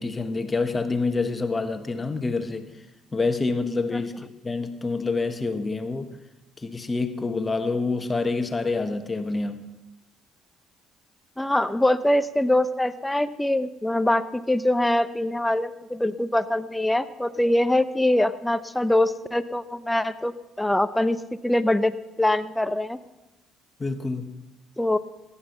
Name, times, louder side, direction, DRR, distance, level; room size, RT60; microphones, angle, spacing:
voice 1, 0.0-2.7 3.1-6.1 6.6-9.6 23.8-24.2, left 3 dB, 25° left, 7 dB, 1.5 m, -27 dB
voice 2, 11.4-20.3 20.6-21.9 22.2-23.0 24.8-25.0, left 1 dB, 10° left, 12 dB, 0.8 m, -23 dB
14.5 x 10.0 x 5.8 m, 0.96 s
supercardioid pair, 65°, 0 cm